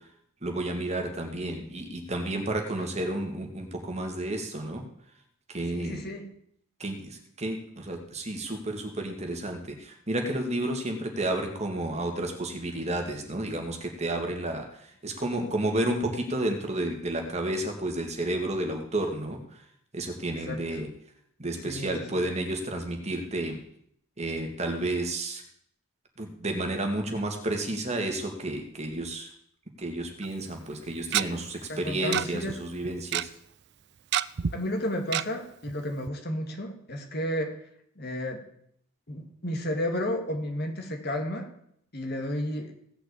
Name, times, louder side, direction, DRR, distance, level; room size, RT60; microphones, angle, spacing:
voice 1, 0.4-4.8 5.5-6.0 6.8-19.6 19.9-20.9 21.4-23.6 24.2-25.4 26.2-29.3 29.8-33.3, right 1 dB, 30° right, 3 dB, 2.2 m, -31 dB
voice 2, 5.7-6.3 20.4-20.8 21.6-22.3 31.7-32.6 34.5-37.5 38.0-38.4 39.1-41.5 41.9-42.7, left 1 dB, 50° left, 4 dB, 2.3 m, -32 dB
Tick-tock, 30.2-30.3 31.1-31.2 32.1-32.2 32.5-32.6 32.8-33.2 34.1-34.5 35.1-35.2 35.7-35.8 36.1-36.2, right 10 dB, 55° right, 0.4 m, -26 dB
16.5 x 6.1 x 8.4 m, 0.69 s
head